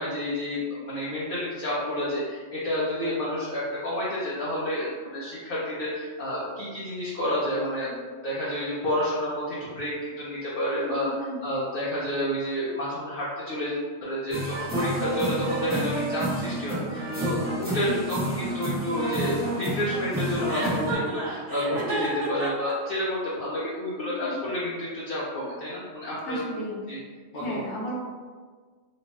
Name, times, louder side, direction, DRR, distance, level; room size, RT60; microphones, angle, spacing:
voice 1, 0.0-26.4 26.9-27.0 27.3-27.6, left 1 dB, 55° left, -9 dB, 0.9 m, -30 dB
voice 2, 10.7-11.4 17.8-18.0 24.0-24.5 26.3-26.8 27.3-28.0, equal, 80° left, -4 dB, 1.2 m, -34 dB
sound 1, 14.3-20.9, right 1 dB, 10° right, 1.0 m, -29 dB
Chuckle chortle, 20.5-22.7, right 3 dB, 80° right, 1.0 m, -32 dB
3.0 x 2.3 x 4.0 m, 1.5 s
omnidirectional pair, 1.2 m